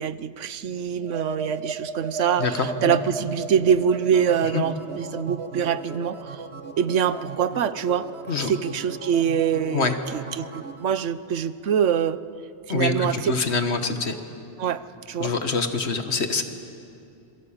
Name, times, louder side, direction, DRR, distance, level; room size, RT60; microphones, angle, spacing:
voice 1, 0.0-6.4 6.8-8.1 8.5-12.2 12.7-13.3 14.6-14.8 15.1-15.3, right 8 dB, 90° right, 14 dB, 1.2 m, -24 dB
sound 1, 1.0-10.8, right 4 dB, 65° right, 1.6 m, -36 dB
voice 2, 2.4-3.0 4.4-4.6 8.3-8.5 9.7-10.0 12.7-14.2 15.2-16.4, left 4 dB, 65° left, 8 dB, 1.8 m, -25 dB
26.5 x 22.5 x 8.8 m, 2.6 s
omnidirectional pair, 1.2 m